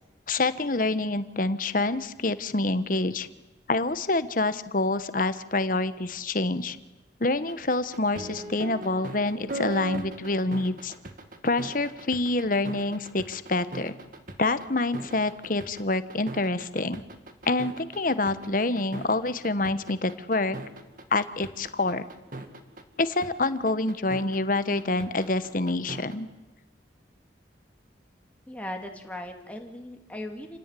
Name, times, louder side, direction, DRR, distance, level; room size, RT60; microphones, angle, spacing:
voice 1, 0.3-3.3 3.7-6.8 7.2-10.9 11.4-13.9 14.4-17.0 17.4-20.6 21.1-22.0 23.0-26.3, left 2 dB, 45° left, 13 dB, 1.2 m, -27 dB
sound 1, 7.5-26.2, right 2 dB, 45° right, 2.3 m, -39 dB
voice 2, 28.5-30.6, left 1 dB, 5° left, 3 dB, 2.6 m, -38 dB
28.5 x 17.5 x 9.9 m, 1.1 s
head